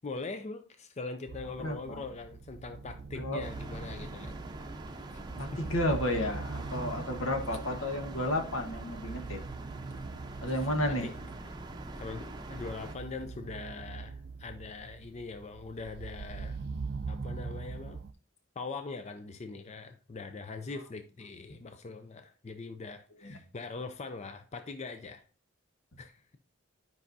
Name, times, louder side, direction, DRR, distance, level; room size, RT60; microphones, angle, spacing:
voice 1, 0.0-4.4 5.1-5.2 11.0-11.1 11.5-11.6 12.0-16.6 17.1-18.0 18.6-25.2 26.0-26.2, left 3 dB, 35° left, 8 dB, 0.4 m, -42 dB
sound 1, 1.3-18.1, right 4 dB, 50° right, 0.4 m, -43 dB
voice 2, 1.6-2.0 3.1-3.4 5.3-9.4 10.4-11.1 23.2-23.4, left 1 dB, 75° left, 5 dB, 1.2 m, -32 dB
A Tunnel away from main street (Müllerstraße), 3.4-13.0, right 2 dB, 20° right, 0.7 m, -43 dB
11.0 x 5.3 x 2.6 m, 0.39 s
head